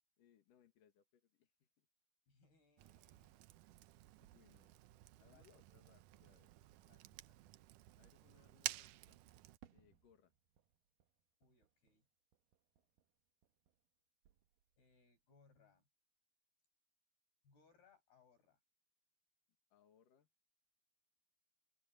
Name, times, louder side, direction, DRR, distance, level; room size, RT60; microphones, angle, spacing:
voice 1, 0.2-1.9 4.2-4.7 5.2-6.5 8.0-9.3 9.7-10.3 19.7-20.3, left 8 dB, 60° left, 3.3 m, -72 dB
voice 2, 2.3-3.5 5.3-5.8 6.1-6.2 6.6-7.8 11.4-12.1 12.8-12.9 14.8-15.9 17.4-18.6, left 5 dB, 80° left, 9.8 m, -73 dB
Fire, 2.8-9.6, right 16 dB, 90° right, 1.8 m, -52 dB
Fireworks, 9.6-14.0 14.2-15.0, right 12 dB, 70° right, 2.6 m, -70 dB
open air
omnidirectional pair, 4.5 m